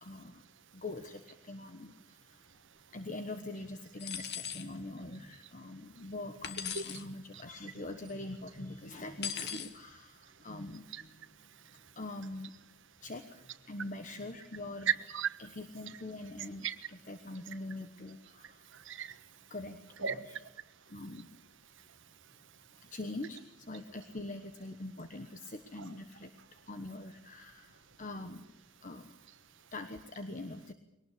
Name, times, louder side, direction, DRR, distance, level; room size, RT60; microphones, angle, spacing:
voice 1, 0.0-0.4 0.7-2.4 2.9-11.2 12.0-12.5 13.0-14.9 15.4-18.6 19.5-20.4 20.9-21.3 22.9-26.3 26.7-28.4 28.8-29.1 29.7-30.7, left 2 dB, 40° left, 7 dB, 1.2 m, -43 dB
sound 1, 4.0-4.7 6.4-7.0 9.2-9.7, left 8 dB, 55° left, 1.8 m, -39 dB
voice 2, 11.5-11.9 14.9-15.4 16.6-16.8 18.4-19.5 20.0-20.4 21.8-21.9 25.8-25.9, right 7 dB, 60° right, 10 dB, 1.4 m, -37 dB
22.5 x 19.0 x 8.6 m, 0.89 s
head